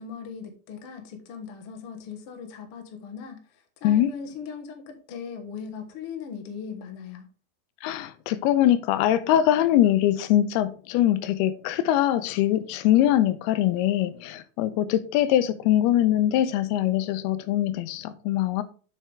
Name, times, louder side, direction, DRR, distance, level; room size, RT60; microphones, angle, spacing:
voice 1, 0.0-3.4 3.8-7.3, left 6 dB, 70° left, 1.3 m, -39 dB
voice 2, 7.8-18.6, left 12 dB, 85° left, 2.5 m, -22 dB
7.5 x 6.8 x 3.4 m
omnidirectional pair, 4.7 m